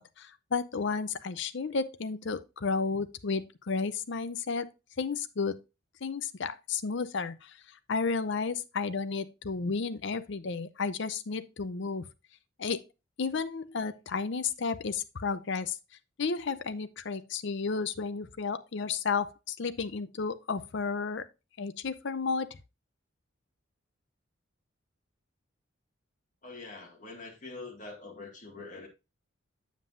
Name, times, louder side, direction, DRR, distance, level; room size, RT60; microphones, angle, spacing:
voice 1, 0.0-4.7 5.0-5.6 6.0-7.5 7.9-12.1 12.6-12.8 13.2-15.8 16.2-21.2 21.6-22.6, left 4 dB, 60° left, 0.6 m, -32 dB
voice 2, 26.4-28.9, left 3 dB, 40° left, 2.0 m, -44 dB
7.4 x 7.4 x 2.6 m
head